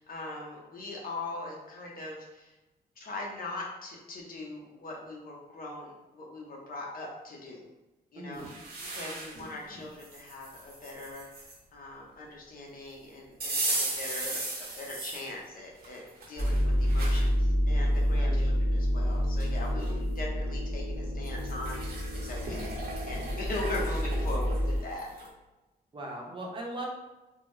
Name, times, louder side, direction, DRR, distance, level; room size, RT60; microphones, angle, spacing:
voice 1, 0.0-2.5 3.0-7.6 8.1-8.5 8.9-11.4 11.7-14.4 14.8-16.0 16.3-22.7 23.0-25.1, left 2 dB, 55° left, -1 dB, 0.9 m, -40 dB
voice 2, 8.2-8.5 18.1-18.5 25.9-26.9, right 1 dB, 30° right, -1 dB, 0.8 m, -39 dB
sound 1, 8.3-9.5 10.0-11.6 13.4-15.3 15.8-17.3 17.8-17.9 19.0-19.1 19.4-20.0 21.2-25.3, right 2 dB, 65° right, 1.0 m, -37 dB
sound 2, 16.4-24.8, equal, 15° left, 1.2 m, -28 dB
3.6 x 2.1 x 3.2 m, 1.1 s
wide cardioid pair, 125°, 17 cm